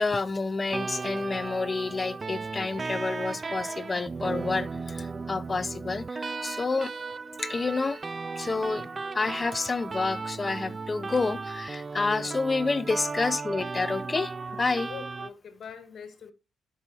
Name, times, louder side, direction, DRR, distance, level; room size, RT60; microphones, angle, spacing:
voice 1, 0.0-6.9 7.4-8.1 8.4-14.9, left 3 dB, 25° left, 0.6 m, -29 dB
sound 1, 0.7-15.3, right 4 dB, 30° right, 0.4 m, -36 dB
voice 2, 12.0-12.4 14.9-16.3, left 7 dB, 55° left, 1.9 m, -43 dB
12.0 x 6.3 x 2.8 m
cardioid pair, 90°, 0 cm